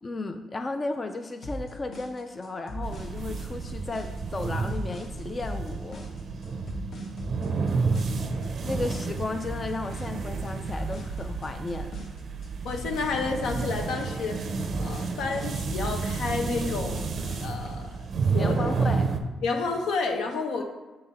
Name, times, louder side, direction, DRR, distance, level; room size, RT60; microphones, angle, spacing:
voice 1, 0.0-6.1 8.6-11.9 18.4-19.1 20.6-20.7, left 3 dB, 25° left, 6 dB, 0.3 m, -34 dB
sound 1, 1.4-17.4, equal, 50° left, 0.9 m, -40 dB
sound 2, 2.8-19.2, right 4 dB, 45° right, 0.5 m, -31 dB
voice 2, 12.6-17.0 17.4-18.6 19.4-20.6, left 4 dB, 80° left, 3 dB, 0.8 m, -30 dB
6.6 x 3.9 x 4.0 m, 1.2 s
cardioid pair, 150°, 0 cm